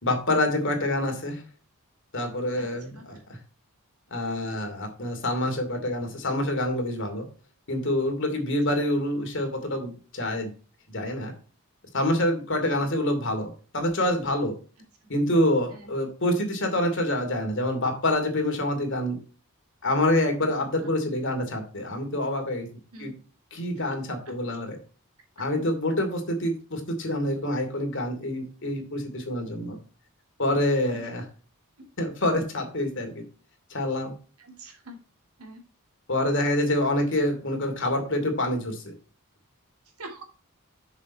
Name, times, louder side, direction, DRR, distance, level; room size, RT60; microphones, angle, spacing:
voice 1, 0.0-1.4 2.1-3.2 4.1-7.2 7.7-10.5 10.9-11.3 11.9-14.6 15.1-19.2 19.8-22.7 23.0-23.1 23.5-24.8 25.4-29.8 30.4-31.3 32.0-33.2 33.7-34.1 36.1-38.9, left 1 dB, 55° left, 5 dB, 2.6 m, -26 dB
voice 2, 34.4-35.0 35.4-35.6 40.0-40.2, right 2 dB, 80° right, 2 dB, 2.8 m, -43 dB
7.3 x 6.5 x 4.1 m, 0.36 s
head